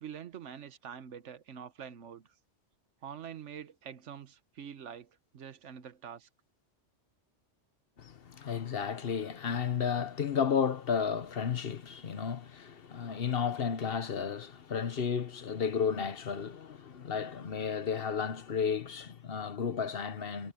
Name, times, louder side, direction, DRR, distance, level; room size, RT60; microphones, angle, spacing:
voice 1, 0.0-2.3 3.0-6.3, right 8 dB, 85° right, 1.3 m, -45 dB
voice 2, 8.0-20.5, left 6 dB, 55° left, 1.1 m, -33 dB
omnidirectional pair, 1.2 m